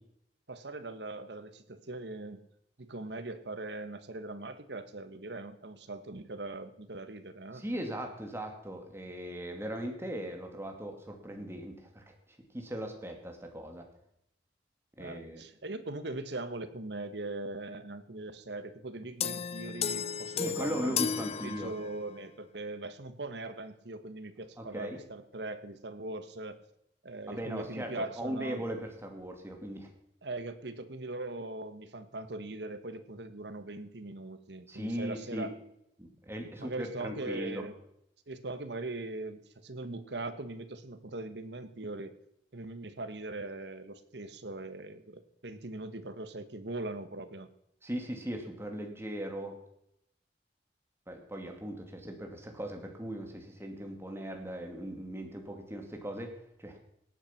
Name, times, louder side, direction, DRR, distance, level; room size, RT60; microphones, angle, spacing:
voice 1, 0.5-2.4 2.8-7.6 15.0-26.6 27.0-28.6 30.2-35.5 36.6-37.7 38.3-42.1 42.5-47.5, right 2 dB, 70° right, 11 dB, 1.3 m, -40 dB
voice 2, 7.5-12.2 12.5-13.9 15.0-15.4 20.4-21.7 24.6-25.0 27.3-29.9 34.7-35.5 36.0-37.6 47.8-49.6 51.1-56.8, equal, 15° right, 3 dB, 2.4 m, -38 dB
sound 1, 19.2-22.2, left 7 dB, 35° left, 0.4 m, -34 dB
18.0 x 9.1 x 5.9 m, 0.78 s
head